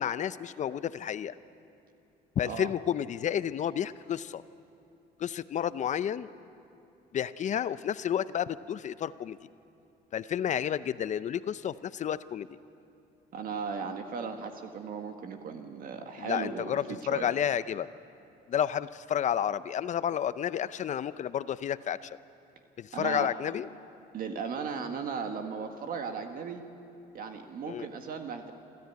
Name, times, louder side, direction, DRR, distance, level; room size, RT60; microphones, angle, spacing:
voice 1, 0.0-1.4 2.4-4.4 5.2-6.3 7.1-9.4 10.1-12.5 16.2-17.9 18.5-22.2 22.8-23.7 27.7-27.9, left 9 dB, 45° left, 15 dB, 0.6 m, -31 dB
voice 2, 13.3-17.3 22.9-23.3 24.1-26.6 27.1-28.5, right 5 dB, 60° right, 5 dB, 1.6 m, -36 dB
27.5 x 13.5 x 9.4 m, 2.6 s
cardioid pair, 110°, 17 cm